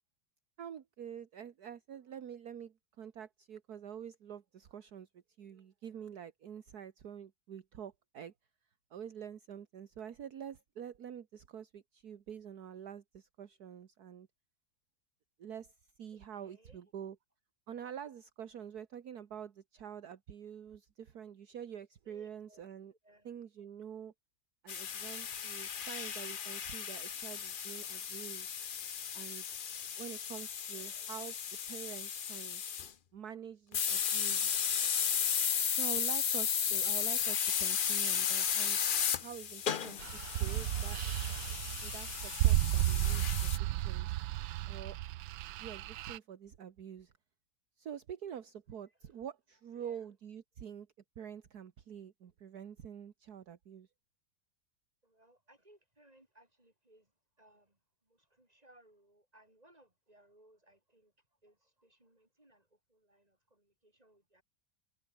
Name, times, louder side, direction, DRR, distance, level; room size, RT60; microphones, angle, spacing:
voice 1, 0.6-5.1 5.4-8.3 8.9-14.3 15.4-17.2 17.7-22.9 23.3-24.1 24.6-28.5 29.1-29.6 30.0-31.4 31.7-32.6 33.1-34.5 35.7-38.8 39.2-40.0 40.4-41.0 41.8-44.2 44.7-45.0 45.6-47.1 47.8-50.9 51.2-53.9, right 8 dB, 60° right, 1.8 m, -47 dB
voice 2, 16.1-16.9 22.0-23.4 30.7-31.3 39.5-40.0 48.9-49.0 49.7-50.1 55.0-57.1 57.4-61.1 61.4-64.4, right 1 dB, 20° right, 6.6 m, -65 dB
sound 1, 24.7-32.9 33.7-43.6, left 7 dB, 55° left, 0.6 m, -35 dB
sound 2, 40.0-46.2, right 15 dB, 80° right, 1.3 m, -33 dB
omnidirectional pair, 1.9 m